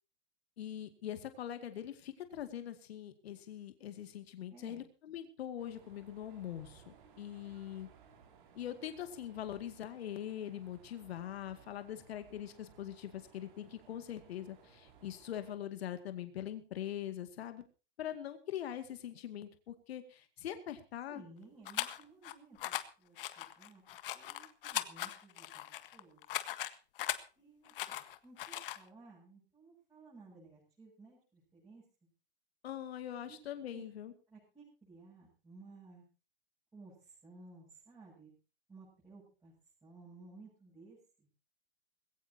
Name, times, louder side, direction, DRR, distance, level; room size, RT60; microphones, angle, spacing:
voice 1, 0.6-7.9 8.5-17.6 18.0-21.2 32.6-34.1, left 11 dB, 75° left, 9 dB, 2.3 m, -43 dB
voice 2, 4.5-4.8 21.1-23.8 24.1-25.6 25.9-26.2 27.4-31.8 33.3-33.4 33.7-33.8 34.3-36.0 36.7-38.3 38.7-39.5 39.8-41.0, right 3 dB, 10° right, -6 dB, 7.8 m, -57 dB
sound 1, 5.6-15.6, right 6 dB, 50° right, 5.6 m, -61 dB
sound 2, 21.7-22.3 22.6-22.8 23.2-27.2 27.7-28.8, left 13 dB, 60° left, 1.6 m, -39 dB
20.5 x 17.0 x 2.8 m, 0.33 s
supercardioid pair, 160°, 32 cm